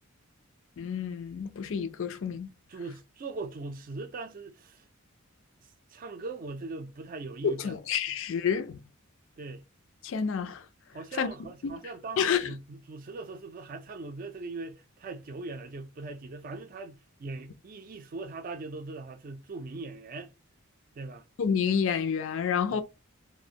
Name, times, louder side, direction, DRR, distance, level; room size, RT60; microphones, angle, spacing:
voice 1, 0.8-2.5 7.4-8.8 10.0-10.7 11.2-11.3 11.6-11.8 12.2-12.5 21.4-22.8, left 7 dB, 60° left, 0.4 m, -29 dB
voice 2, 2.7-4.8 5.9-7.7 9.4-9.6 10.9-20.3 21.0-21.2 22.7-22.8, right 3 dB, 40° right, 0.4 m, -40 dB
2.4 x 2.1 x 2.7 m
head